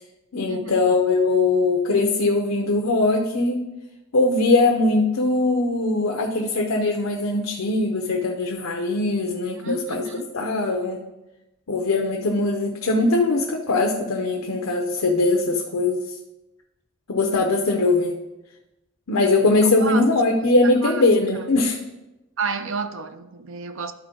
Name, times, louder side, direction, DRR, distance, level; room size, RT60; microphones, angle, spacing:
voice 1, 0.3-3.6 4.1-10.1 10.3-11.0 11.7-16.1 17.1-18.1 19.1-21.8, left 2 dB, 75° left, 0.7 m, -21 dB
voice 2, 9.6-10.3 19.6-20.0 20.6-21.0 22.4-23.9, right 5 dB, 60° right, 0.6 m, -30 dB
12.5 x 4.4 x 3.9 m
head